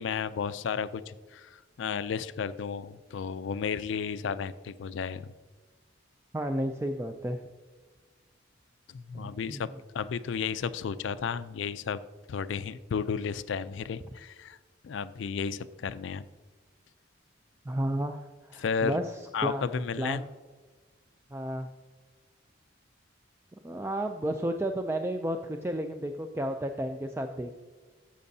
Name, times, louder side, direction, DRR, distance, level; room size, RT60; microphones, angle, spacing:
voice 1, 0.0-5.3 8.9-9.7 9.9-12.0 12.3-14.6 14.8-16.2 18.6-19.0 19.3-20.2, left 6 dB, 70° left, 14 dB, 0.4 m, -33 dB
voice 2, 6.3-7.4 9.1-9.6 17.7-19.1 19.4-19.7 20.0-20.2 21.3-21.7 23.6-27.5, right 1 dB, 15° right, 5 dB, 0.3 m, -32 dB
12.5 x 7.6 x 2.7 m, 1.4 s
head